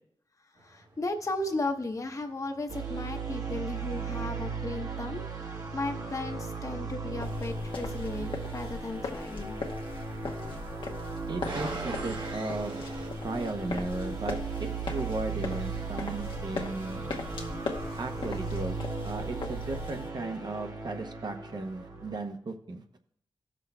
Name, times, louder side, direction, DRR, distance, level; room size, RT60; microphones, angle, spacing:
voice 1, 0.6-9.6 10.4-10.6, left 2 dB, 40° left, 5 dB, 0.8 m, -35 dB
sound 1, 0.6-13.1, right 2 dB, 75° right, 1.8 m, -46 dB
sound 2, 2.7-22.2, right 4 dB, 40° right, 1.2 m, -37 dB
sound 3, 7.2-20.1, left 4 dB, 85° left, 0.9 m, -40 dB
voice 2, 11.3-12.8 13.2-17.2 18.0-18.8 19.0-22.8, right 2 dB, 55° right, 5 dB, 0.8 m, -36 dB
17.0 x 6.2 x 2.3 m, 0.70 s
wide cardioid pair, 80°, 8 cm